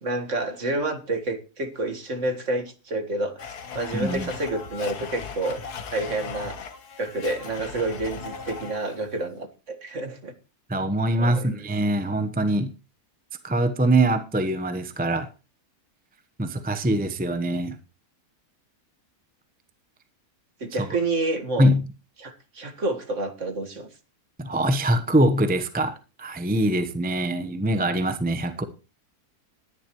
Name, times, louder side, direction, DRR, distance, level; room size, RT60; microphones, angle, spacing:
voice 1, 0.0-5.6 5.9-6.6 7.0-10.3 11.2-11.5 20.6-21.7 22.2-23.9, right 2 dB, 50° right, 6 dB, 2.0 m, -29 dB
Domestic sounds home sounds, 3.4-9.1, left 6 dB, 85° left, 1.8 m, -38 dB
voice 2, 3.9-4.3 10.7-12.7 13.4-15.3 16.4-17.8 21.6-21.8 24.4-28.6, right 1 dB, 5° right, 9 dB, 0.8 m, -23 dB
19.5 x 10.5 x 3.1 m, 0.30 s
omnidirectional pair, 1.6 m